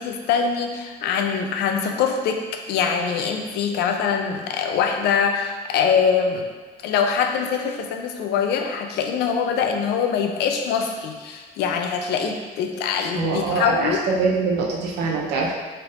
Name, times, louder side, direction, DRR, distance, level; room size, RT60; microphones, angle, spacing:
voice 1, 0.0-2.4 2.7-6.5 6.8-14.0, left 6 dB, 80° left, 4 dB, 0.5 m, -23 dB
voice 2, 13.1-15.5, right 3 dB, 85° right, -1 dB, 0.7 m, -23 dB
4.3 x 3.4 x 2.5 m, 1.4 s
cardioid pair, 110°, 17 cm